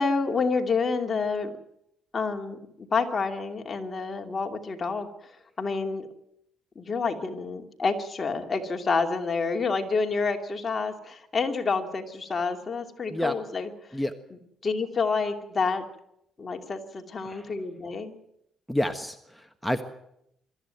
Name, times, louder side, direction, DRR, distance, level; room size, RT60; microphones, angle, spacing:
voice 1, 0.0-1.5 2.1-5.1 5.6-6.1 6.7-13.7 14.6-15.8 16.4-18.2, left 4 dB, 35° left, 4 dB, 2.7 m, -28 dB
voice 2, 18.7-19.8, left 1 dB, ahead, 6 dB, 1.4 m, -29 dB
23.5 x 14.0 x 9.2 m, 0.80 s
cardioid pair, 90°, 0 cm